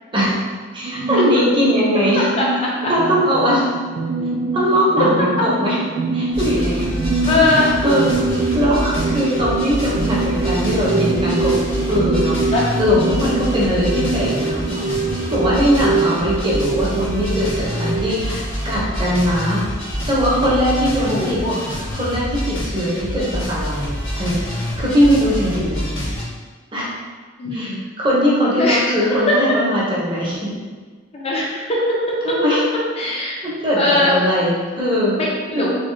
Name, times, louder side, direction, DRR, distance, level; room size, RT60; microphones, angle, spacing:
voice 1, 0.7-2.3 2.9-3.7 4.5-5.8 6.1-7.0 7.4-7.5 7.8-8.1 8.5-11.6 11.9-12.4 12.8-14.6 15.3-19.7 20.1-21.4 22.0-24.4 24.8-26.0 26.7-26.9 27.5-30.5 32.2-32.6 33.4-35.2 35.5-35.7, equal, 25° right, -6 dB, 0.8 m, -20 dB
sound 1, 0.8-18.2, right 3 dB, 50° right, 0.4 m, -23 dB
voice 2, 2.4-2.7 7.3-7.7 12.5-12.6 21.0-21.5 27.4-27.8 28.6-29.2 31.1-32.4 33.0-33.4 33.8-34.1 35.2-35.7, left 2 dB, 30° left, -4 dB, 0.6 m, -20 dB
sound 2, 6.3-26.2, equal, 80° left, 1.1 m, -27 dB
3.5 x 2.6 x 3.1 m, 1.4 s
head